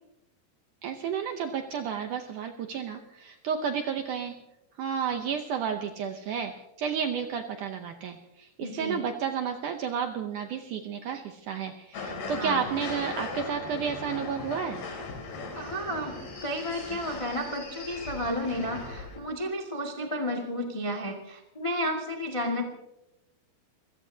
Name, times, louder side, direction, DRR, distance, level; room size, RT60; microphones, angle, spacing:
voice 1, 0.8-4.4 4.8-6.5 6.8-14.8, right 7 dB, 75° right, 5 dB, 1.9 m, -32 dB
voice 2, 8.6-9.0 12.3-12.6 15.5-22.6, equal, 25° left, 0 dB, 0.6 m, -32 dB
sound 1, 11.9-19.2, left 3 dB, 90° left, 5.3 m, -38 dB
27.0 x 16.5 x 2.8 m, 0.90 s
omnidirectional pair, 4.6 m